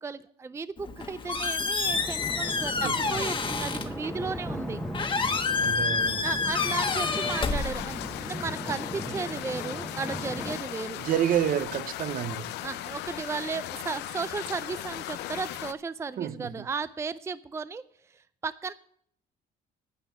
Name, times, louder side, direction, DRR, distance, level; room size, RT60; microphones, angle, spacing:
voice 1, 0.0-4.8 6.2-11.0 12.6-17.8 18.1-18.7, right 4 dB, 15° right, 0.5 m, -35 dB
Squeak, 0.8-8.3, left 4 dB, 30° left, 1.3 m, -29 dB
sound 1, 1.8-10.6, equal, ahead, 1.1 m, -38 dB
voice 2, 2.8-3.2 5.6-6.3 11.0-12.5 16.2-16.6, right 10 dB, 55° right, 0.8 m, -29 dB
sound 2, 6.5-15.7, left 14 dB, 85° left, 0.7 m, -37 dB
9.8 x 9.5 x 6.9 m
cardioid pair, 110°, 17 cm